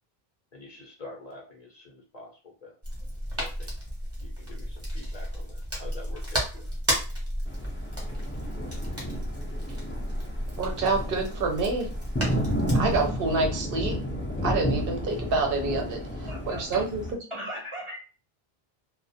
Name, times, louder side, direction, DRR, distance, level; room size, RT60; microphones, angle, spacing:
voice 1, 0.5-2.8 3.4-3.7 4.2-6.7, left 2 dB, 45° left, -1 dB, 0.7 m, -46 dB
sound 1, 2.8-13.1, equal, 15° right, 0.8 m, -33 dB
Thunder, 7.5-17.1, equal, 15° left, 0.4 m, -32 dB
voice 2, 10.5-11.9 12.7-13.9 14.4-17.0, right 3 dB, 65° right, 3 dB, 0.8 m, -27 dB
voice 3, 16.3-16.8 17.3-18.0, equal, 40° right, -5 dB, 0.5 m, -37 dB
2.3 x 2.1 x 2.6 m, 0.36 s
omnidirectional pair, 1.0 m